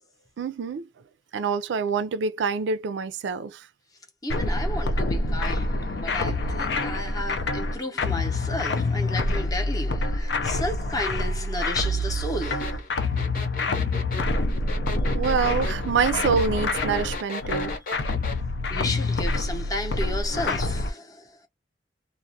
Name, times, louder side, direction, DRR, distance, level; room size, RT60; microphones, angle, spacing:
voice 1, 0.4-0.9 1.3-3.7 15.1-17.7, right 5 dB, 90° right, 0.4 m, -26 dB
voice 2, 4.2-12.8 18.7-21.4, left 1 dB, 20° left, 0.6 m, -33 dB
sound 1, 4.3-20.9, left 2 dB, 75° left, 0.5 m, -26 dB
sound 2, 12.4-18.4, left 3 dB, 50° left, 0.8 m, -35 dB
2.3 x 2.0 x 2.6 m
head